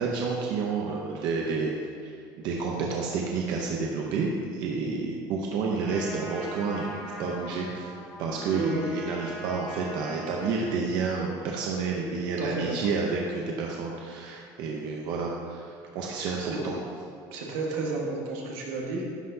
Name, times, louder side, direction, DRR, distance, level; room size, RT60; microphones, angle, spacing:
voice 1, 0.0-1.7 2.0-2.1 2.4-6.9 7.2-7.9 8.2-16.8, right 4 dB, 55° right, -1 dB, 0.7 m, -30 dB
Trumpet, 5.8-10.8, right 1 dB, ahead, 1.3 m, -41 dB
voice 2, 8.5-8.8 12.4-12.8 16.4-16.6 17.3-19.1, right 3 dB, 90° right, -2 dB, 1.5 m, -31 dB
11.0 x 5.7 x 2.8 m, 2.2 s
cardioid pair, 170°, 9 cm